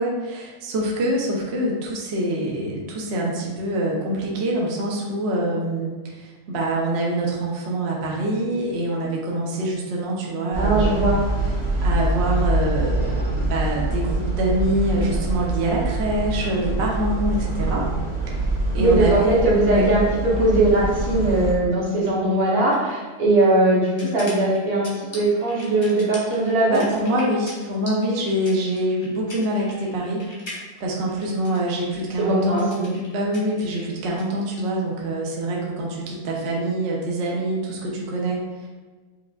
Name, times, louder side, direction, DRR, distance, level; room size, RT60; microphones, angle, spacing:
voice 1, 0.0-11.1 11.8-17.9 18.3-19.9 26.7-30.2 30.5-32.7 33.1-38.7, right 1 dB, 60° right, -3 dB, 0.8 m, -25 dB
sound 1, 10.5-21.5, right 2 dB, 25° right, 1.3 m, -25 dB
voice 2, 10.6-11.2 18.8-26.8 32.2-33.0, right 2 dB, 75° right, -6 dB, 1.5 m, -20 dB
sound 2, 21.9-34.7, left 1 dB, 35° left, 0.4 m, -42 dB
4.9 x 2.3 x 2.3 m, 1.4 s
omnidirectional pair, 1.6 m